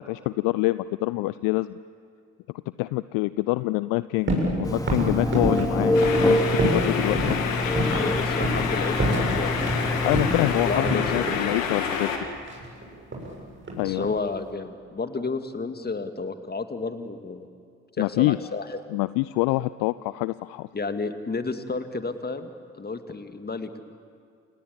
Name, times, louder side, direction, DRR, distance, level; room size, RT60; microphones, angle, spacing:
voice 1, 0.1-1.8 2.8-4.3 4.6-6.4 6.7-7.4 10.0-12.1 13.8-14.1 18.0-18.4 18.9-20.7, left 20 dB, 60° left, 17 dB, 0.6 m, -26 dB
sound 1, 4.3-4.6 4.9-6.9 7.1-7.4 7.8-8.1 8.4-8.7 9.0-9.8 10.1-11.5 12.4-13.4 13.6-14.1, right 1 dB, 30° right, 7.2 m, -27 dB
Telephone, 4.6-10.8, left 1 dB, 10° left, 3.2 m, -26 dB
sound 2, 5.9-12.2, left 6 dB, 80° left, 2.2 m, -28 dB
voice 2, 7.9-10.1 10.6-11.4 13.8-17.5 18.0-18.8 20.7-22.5 22.8-23.8, left 4 dB, 25° left, 8 dB, 2.2 m, -31 dB
28.5 x 19.0 x 8.6 m, 2.4 s
figure-of-eight pair, 45°, 38 cm